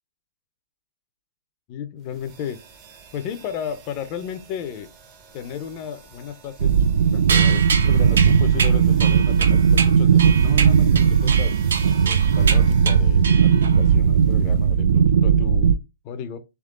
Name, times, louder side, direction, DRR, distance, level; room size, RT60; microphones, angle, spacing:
voice 1, 1.7-2.6 3.1-4.9 5.3-16.4, left 8 dB, 25° left, 0.5 m, -34 dB
sound 1, 2.1-14.9, right 7 dB, 15° right, 0.6 m, -44 dB
sound 2, 6.6-15.8, right 7 dB, 65° right, 0.3 m, -17 dB
sound 3, 7.3-13.9, right 5 dB, 85° right, 1.0 m, -27 dB
3.6 x 3.6 x 3.7 m
hypercardioid pair, 175°, 0 cm